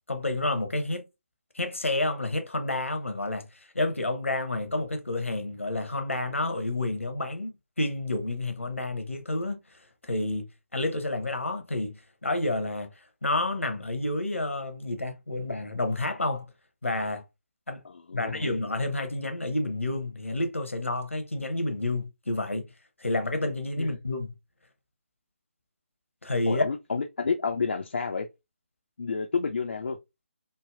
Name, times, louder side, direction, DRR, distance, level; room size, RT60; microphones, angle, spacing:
voice 1, 0.1-1.1 1.5-3.4 3.7-9.6 10.0-10.5 10.7-12.9 13.2-16.5 16.8-17.2 17.7-17.8 18.1-22.7 23.0-24.3 26.2-26.6, left 2 dB, 75° left, 0.8 m, -29 dB
voice 2, 17.8-18.5 23.8-23.9 26.5-28.3 29.0-30.0, left 5 dB, 55° left, 0.4 m, -30 dB
3.3 x 2.0 x 2.4 m
figure-of-eight pair, 145°, 7 cm